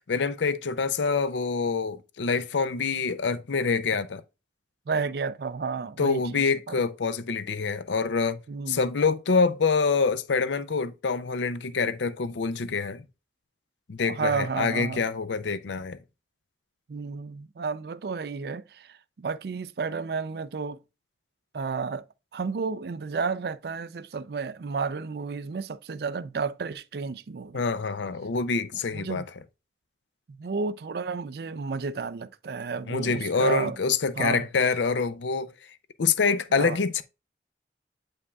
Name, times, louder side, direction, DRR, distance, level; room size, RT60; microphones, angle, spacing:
voice 1, 0.1-4.2 6.0-8.4 8.7-13.0 13.9-16.0 27.5-29.3 32.9-35.5 36.0-37.0, left 4 dB, 85° left, 0.6 m, -26 dB
voice 2, 4.9-6.8 8.5-8.9 14.0-15.0 16.9-20.8 21.5-22.0 22.3-27.6 28.9-29.3 30.3-33.8 34.2-34.5 36.5-36.8, right 5 dB, 60° right, 0.4 m, -32 dB
8.3 x 5.3 x 2.3 m
head